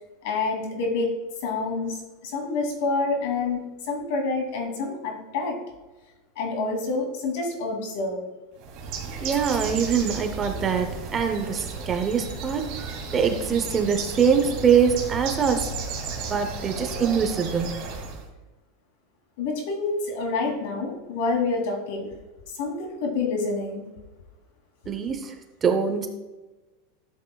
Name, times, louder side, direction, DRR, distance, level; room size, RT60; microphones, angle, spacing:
voice 1, 0.2-1.1 1.4-5.6 6.4-8.2 19.4-22.1 22.6-23.9, left 3 dB, 65° left, 2 dB, 2.6 m, -27 dB
Bird, 8.6-18.3, right 4 dB, 45° right, 2.3 m, -34 dB
voice 2, 9.2-12.8 13.1-15.7 16.3-17.8 24.9-25.3 25.6-26.1, right 6 dB, 20° right, 6 dB, 0.7 m, -23 dB
12.0 x 7.7 x 2.3 m, 1.1 s
supercardioid pair, 160°, 0 cm